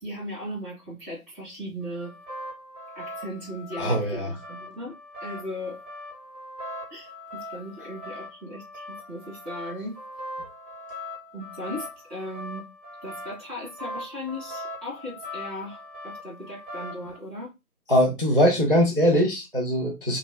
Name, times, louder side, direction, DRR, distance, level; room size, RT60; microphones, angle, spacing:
voice 1, 0.0-2.1 2.9-4.9 5.2-5.8 6.9-10.0 11.3-12.6 13.0-17.5, equal, 10° left, 0.8 m, -37 dB
sound 1, 1.8-17.2, left 1 dB, 25° right, 1.0 m, -40 dB
voice 2, 3.8-4.3 17.9-20.2, equal, 40° right, 0.4 m, -21 dB
3.0 x 2.8 x 2.2 m
figure-of-eight pair, 150°, 46 cm